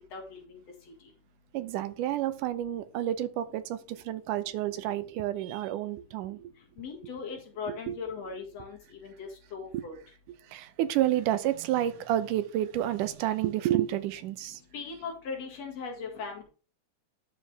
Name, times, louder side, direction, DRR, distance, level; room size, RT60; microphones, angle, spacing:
voice 1, 0.1-0.6 6.8-9.9 14.7-16.4, left 5 dB, 55° left, 2.8 m, -39 dB
voice 2, 1.5-6.5 7.9-8.0 9.7-9.8 10.5-14.6, right 12 dB, 85° right, 2.3 m, -30 dB
11.0 x 5.0 x 3.4 m
omnidirectional pair, 3.6 m